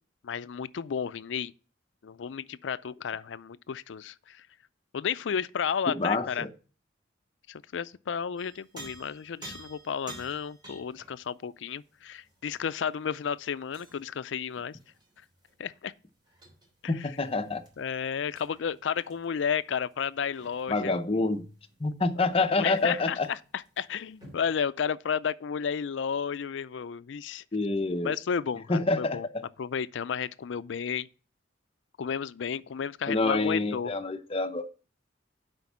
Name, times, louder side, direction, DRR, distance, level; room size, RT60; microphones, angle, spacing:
voice 1, 0.2-1.5 2.0-4.4 4.9-6.5 7.5-14.8 15.6-15.9 16.8-17.1 17.8-21.0 22.6-27.4 28.0-29.3 29.6-31.1 32.0-33.9, left 7 dB, 80° left, 0.4 m, -32 dB
voice 2, 5.9-6.5 16.9-17.6 20.7-21.5 21.8-23.3 27.5-28.1 28.7-29.4 33.1-34.7, left 3 dB, 30° left, 0.7 m, -27 dB
sound 1, 8.4-14.2 14.5-24.4, right 2 dB, 25° right, 3.0 m, -52 dB
7.7 x 5.2 x 7.2 m
head